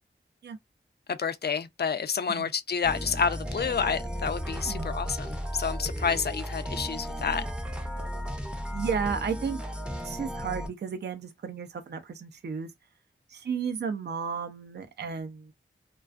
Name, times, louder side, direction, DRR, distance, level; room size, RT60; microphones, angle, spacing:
voice 1, 1.1-7.5, left 6 dB, 55° left, 0.4 m, -29 dB
sound 1, 2.8-10.7, equal, 5° right, 0.5 m, -34 dB
voice 2, 4.6-5.0 8.7-9.6 10.0-12.7 13.3-15.5, right 6 dB, 55° right, 0.4 m, -33 dB
2.4 x 2.3 x 2.4 m
wide cardioid pair, 55°, 20 cm